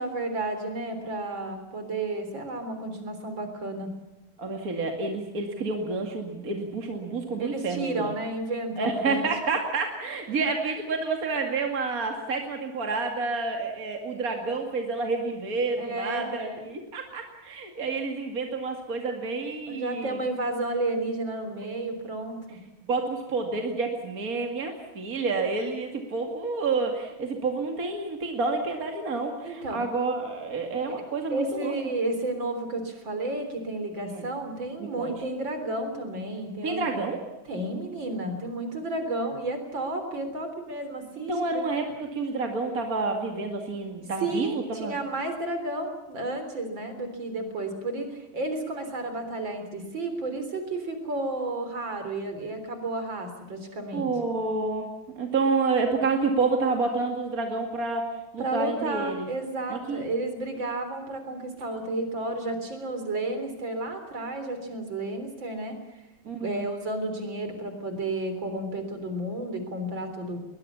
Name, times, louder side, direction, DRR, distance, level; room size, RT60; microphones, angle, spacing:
voice 1, 0.0-3.9 7.4-9.2 15.8-16.6 19.7-22.6 29.4-29.8 31.3-36.9 37.5-41.6 44.2-54.1 58.4-65.8 66.4-70.4, right 2 dB, 70° right, 7 dB, 4.4 m, -32 dB
voice 2, 4.4-8.1 8.8-20.2 22.9-31.7 34.0-34.2 34.8-35.1 36.6-37.2 41.3-45.0 53.9-54.9 55.2-58.1 58.3-59.3 59.7-60.0 66.3-66.7, right 3 dB, 45° right, 3 dB, 2.7 m, -29 dB
22.5 x 21.0 x 7.1 m, 1.0 s
omnidirectional pair, 2.1 m